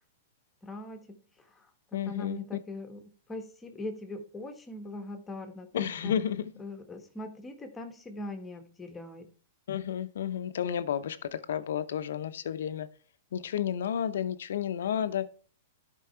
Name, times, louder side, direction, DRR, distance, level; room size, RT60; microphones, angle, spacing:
voice 1, 0.6-1.7 2.1-3.0 3.3-6.1 6.6-9.3, left 2 dB, 15° left, 1.3 m, -41 dB
voice 2, 1.9-2.4 5.7-6.5 9.7-12.9 13.3-15.3, left 9 dB, 75° left, 0.7 m, -31 dB
11.5 x 4.6 x 4.5 m
hypercardioid pair, 125°, 0 cm